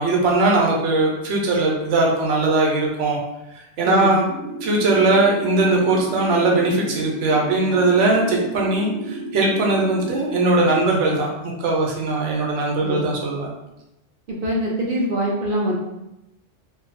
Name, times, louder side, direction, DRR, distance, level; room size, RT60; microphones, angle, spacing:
voice 1, 0.0-3.2 3.5-4.2 4.6-13.5, right 2 dB, 85° right, -1 dB, 1.0 m, -20 dB
voice 2, 3.9-4.2 12.8-13.1 14.3-15.7, equal, 60° right, -3 dB, 0.6 m, -24 dB
sound 1, 4.2-10.8, right 2 dB, 30° right, 0.8 m, -33 dB
2.7 x 2.3 x 2.5 m, 0.92 s
omnidirectional pair, 1.2 m